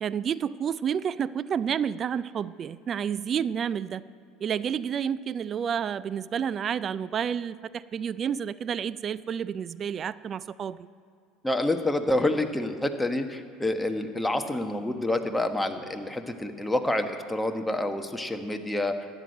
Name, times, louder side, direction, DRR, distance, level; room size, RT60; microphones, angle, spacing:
voice 1, 0.0-4.0 4.4-10.8, right 8 dB, 40° right, 17 dB, 0.4 m, -30 dB
voice 2, 11.4-18.9, left 1 dB, 5° left, 6 dB, 1.2 m, -28 dB
12.5 x 8.0 x 9.1 m, 2.5 s
hypercardioid pair, 75°, 0 cm